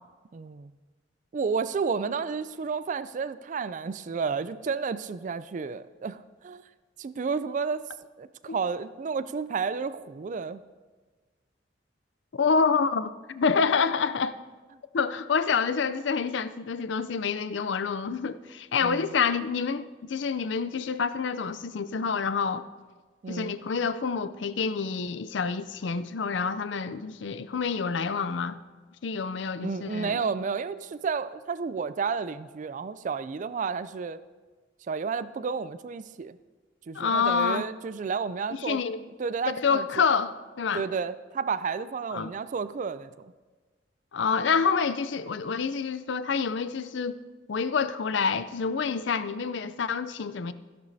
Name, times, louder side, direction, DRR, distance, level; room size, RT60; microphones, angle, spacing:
voice 1, 0.3-0.7 1.3-6.6 7.0-7.8 8.2-10.6 18.8-19.1 23.2-23.6 29.6-34.2 34.9-36.4 36.9-38.8 39.2-40.0 40.7-43.3, right 5 dB, 40° right, 0.3 m, -31 dB
voice 2, 12.3-14.4 14.9-22.6 23.3-28.6 29.0-30.1 36.9-37.7 38.5-39.0 39.6-40.8 42.1-42.3 44.1-47.2 47.5-50.5, left 5 dB, 70° left, 0.5 m, -27 dB
16.0 x 11.5 x 2.7 m
head